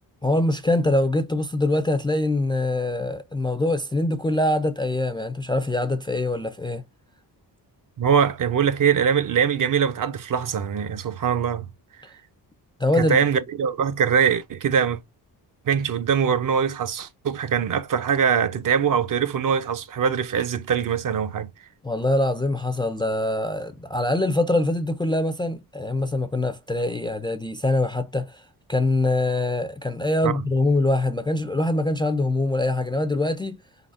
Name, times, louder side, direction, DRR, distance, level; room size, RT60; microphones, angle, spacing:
voice 1, 0.2-6.8 12.8-13.2 21.8-33.6, left 2 dB, 10° left, 0.4 m, -24 dB
voice 2, 8.0-11.7 13.0-15.0 15.7-21.5 30.2-30.4, right 7 dB, 55° right, 0.6 m, -22 dB
4.6 x 3.9 x 2.5 m
wide cardioid pair, 145°, 40 cm